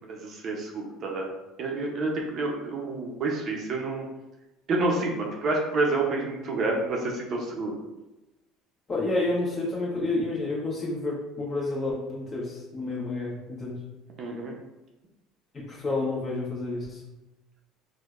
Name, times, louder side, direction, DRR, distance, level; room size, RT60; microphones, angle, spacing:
voice 1, 0.1-1.3 1.6-4.0 4.7-7.8 14.2-14.5, right 2 dB, 45° right, 0 dB, 0.6 m, -28 dB
voice 2, 8.9-13.8 15.5-17.0, left 2 dB, 35° left, -4 dB, 1.1 m, -30 dB
4.5 x 2.1 x 2.4 m, 1.0 s
supercardioid pair, 110°, 0 cm